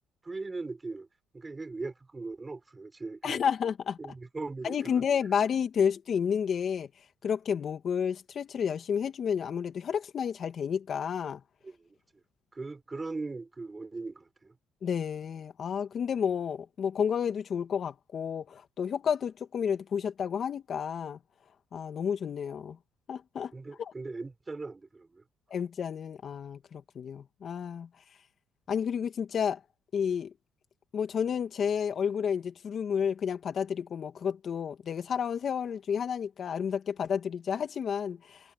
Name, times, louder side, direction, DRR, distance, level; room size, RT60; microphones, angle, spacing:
voice 1, 0.2-1.1 1.3-3.5 4.0-5.0 11.6-11.8 12.5-14.5 23.5-25.2, right 3 dB, 20° right, 4.7 m, -39 dB
voice 2, 3.2-4.0 4.6-6.9 7.2-11.4 14.8-21.2 21.7-22.8 23.1-23.5 23.8-23.9 25.5-27.9 28.7-29.6 29.9-30.3 30.9-38.4, left 7 dB, 50° left, 2.3 m, -31 dB
cardioid pair, 90°, 0 cm